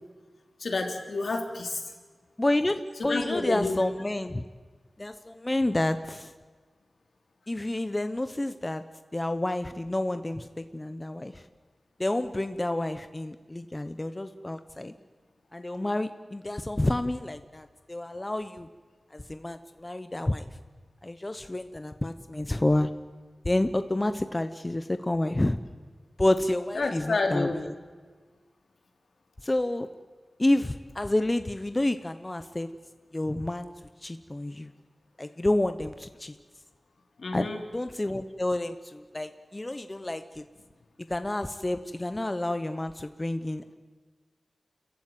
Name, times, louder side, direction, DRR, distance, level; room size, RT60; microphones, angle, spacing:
voice 1, 0.6-1.8 3.0-3.8 26.8-27.6 37.2-37.6, left 3 dB, 75° left, 3 dB, 3.4 m, -29 dB
voice 2, 2.4-4.4 5.0-6.3 7.5-8.8 9.1-11.4 12.0-14.9 15.5-18.7 19.1-20.4 21.0-22.9 23.4-25.6 26.2-27.7 29.4-29.9 30.4-32.7 33.1-33.7 34.0-34.7 35.2-36.3 37.3-37.5 37.7-40.5 41.1-43.7, left 1 dB, 20° left, 10 dB, 0.9 m, -29 dB
29.5 x 15.0 x 9.4 m, 1.5 s
wide cardioid pair, 105°, 0 cm